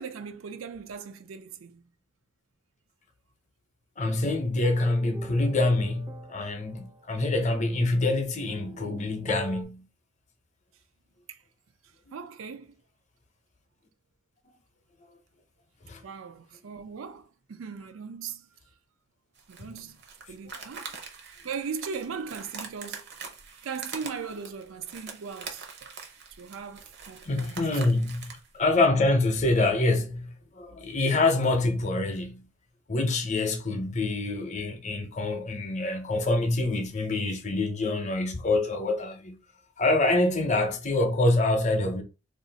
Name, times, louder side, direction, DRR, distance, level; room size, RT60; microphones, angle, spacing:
voice 1, 0.0-1.9 11.3-11.4 12.1-12.8 16.0-18.5 19.5-20.0 20.3-20.9 21.4-23.1 23.6-25.9 26.4-28.0, right 6 dB, 85° right, 0.4 m, -39 dB
voice 2, 4.0-9.8 15.8-16.0 27.2-32.5 32.9-39.4 39.8-42.0, left 2 dB, 35° left, 0.6 m, -26 dB
sound 1, 4.0-9.6, right 1 dB, 15° right, 0.4 m, -46 dB
sound 2, 19.4-28.5, right 5 dB, 55° right, 0.7 m, -43 dB
2.5 x 2.4 x 3.9 m
head